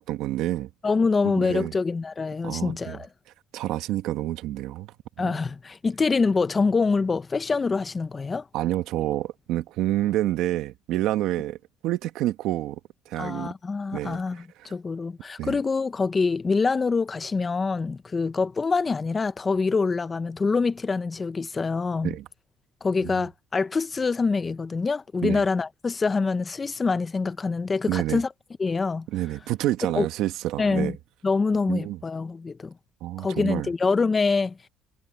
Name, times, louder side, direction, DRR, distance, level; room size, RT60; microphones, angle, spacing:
voice 1, 0.0-0.7 1.2-1.7 2.4-3.0 3.5-5.4 8.5-11.6 11.8-12.8 13.1-13.5 13.9-14.7 15.4-15.6 22.0-22.3 23.0-23.2 25.2-25.4 27.9-28.2 29.1-31.0 31.7-32.0 33.0-33.7, right 14 dB, 75° right, 1.4 m, -28 dB
voice 2, 0.8-3.1 5.2-8.5 13.2-22.2 22.8-28.3 28.6-29.1 30.0-30.1 30.6-30.9 31.2-32.7 33.2-34.7, left 4 dB, 25° left, 0.6 m, -25 dB
cardioid pair, 125°, 0 cm